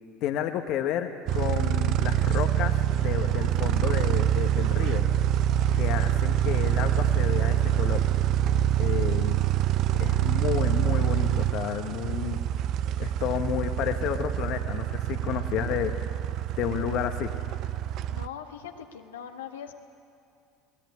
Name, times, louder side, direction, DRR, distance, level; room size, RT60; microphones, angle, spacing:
voice 1, 0.2-5.0 5.7-8.0 8.8-9.4 10.0-12.4 13.0-15.9 16.6-17.3, left 10 dB, 60° left, 6 dB, 1.3 m, -31 dB
sound 1, 1.3-18.3, right 11 dB, 60° right, 0.6 m, -25 dB
voice 2, 18.1-19.7, left 8 dB, 90° left, 4 dB, 1.6 m, -41 dB
21.5 x 18.5 x 9.6 m, 2.4 s
hypercardioid pair, 75°, 0 cm